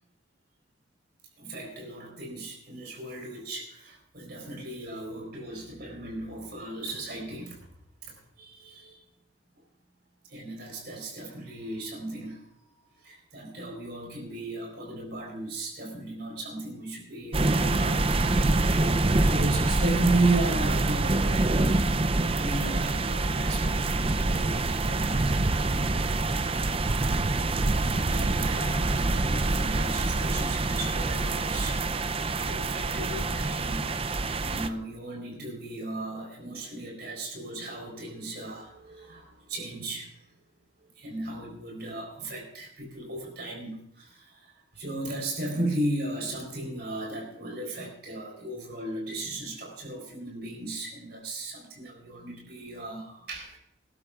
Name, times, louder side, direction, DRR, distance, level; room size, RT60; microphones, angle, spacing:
voice 1, 1.4-7.7 8.0-9.0 10.3-12.5 13.0-18.1 18.6-25.3 28.0-31.8 32.4-40.1 41.0-53.6, right 2 dB, 55° right, 1 dB, 4.1 m, -35 dB
sound 1, 17.3-34.7, right 2 dB, 30° right, 0.5 m, -26 dB
22.0 x 12.5 x 2.4 m, 0.72 s
head